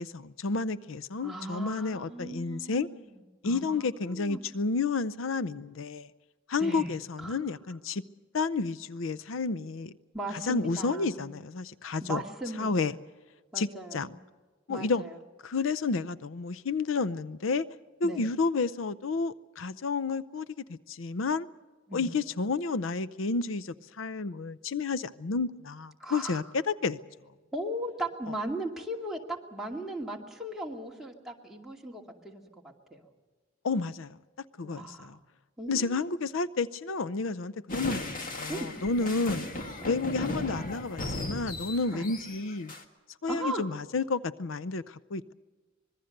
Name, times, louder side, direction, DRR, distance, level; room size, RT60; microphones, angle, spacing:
voice 1, 0.0-2.9 3.4-6.1 6.5-8.0 8.3-9.9 10.3-12.2 12.6-12.9 13.5-14.1 14.7-15.0 15.4-17.7 18.0-21.5 21.9-27.0 33.6-34.2 34.6-35.2 35.7-39.4 39.9-42.7 43.2-45.3, left 4 dB, 85° left, 0.6 m, -31 dB
voice 2, 1.2-4.4 6.6-6.9 7.2-7.4 10.1-11.3 12.0-12.9 13.5-14.1 14.7-15.1 18.0-18.2 21.9-22.1 26.0-26.4 27.5-33.0 34.6-35.2 35.6-36.2 38.5-38.7 39.0-39.9 41.9-42.0 43.3-43.7, right 1 dB, ahead, 2.5 m, -38 dB
sound 1, 37.7-42.8, left 1 dB, 45° left, 1.9 m, -36 dB
25.0 x 21.5 x 6.6 m
head